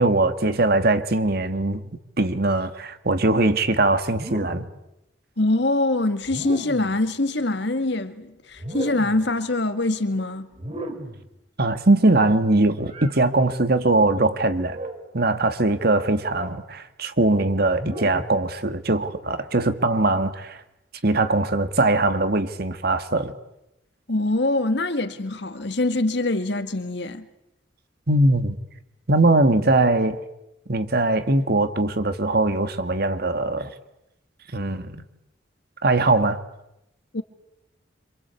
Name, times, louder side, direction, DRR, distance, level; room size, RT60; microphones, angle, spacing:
voice 1, 0.0-1.8 2.2-4.7 11.6-14.8 15.1-20.6 21.0-23.3 28.1-28.6 29.1-30.2 30.7-33.7 34.5-35.0 35.8-36.4, right 2 dB, 55° right, 1.8 m, -21 dB
sound 1, 4.1-4.8 6.2-7.0 8.5-9.3 10.5-11.3 12.8-13.2 14.6-15.1 16.2-16.6 17.7-18.4, right 1 dB, 35° right, 2.9 m, -35 dB
voice 2, 5.4-10.5 24.1-27.3 37.1-37.2, left 2 dB, 60° left, 1.8 m, -24 dB
26.5 x 26.5 x 8.3 m
head